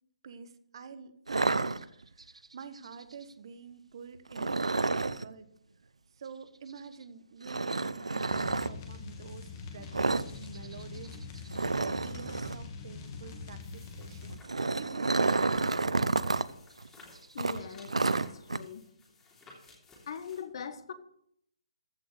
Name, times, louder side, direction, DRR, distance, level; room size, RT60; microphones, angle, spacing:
voice 1, 0.2-5.5 6.2-14.5 14.8-16.5, right 6 dB, 50° right, 12 dB, 1.2 m, -48 dB
sound 1, 1.3-2.3 4.3-5.3 7.5-8.7 9.9-10.3 10.6-10.7 11.1-11.2 11.5-12.6 14.2-16.5 16.8-16.9 17.4-18.6, right 3 dB, 80° right, 0.6 m, -29 dB
sound 2, 8.3-14.4, left 4 dB, 30° left, 2.2 m, -44 dB
sound 3, 13.6-20.4, left 2 dB, 15° left, 3.0 m, -56 dB
voice 2, 17.3-18.2 18.5-18.8 20.1-20.9, left 7 dB, 50° left, 13 dB, 1.2 m, -41 dB
14.5 x 6.1 x 6.7 m, 0.72 s
figure-of-eight pair, 140°, 3 cm